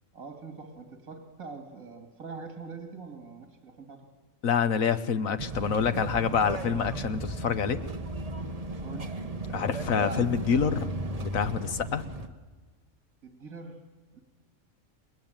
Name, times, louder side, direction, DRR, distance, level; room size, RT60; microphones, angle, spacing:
voice 1, 0.1-4.1 8.8-9.1 13.2-13.8 14.1-14.2, right 4 dB, 80° right, 3 dB, 2.5 m, -43 dB
voice 2, 4.4-7.8 9.5-10.9 11.2-12.0, left 7 dB, 75° left, 10 dB, 1.5 m, -27 dB
sound 1, 5.4-12.3, right 2 dB, 30° right, 1.2 m, -35 dB
29.0 x 21.5 x 9.0 m, 1.3 s
omnidirectional pair, 1.4 m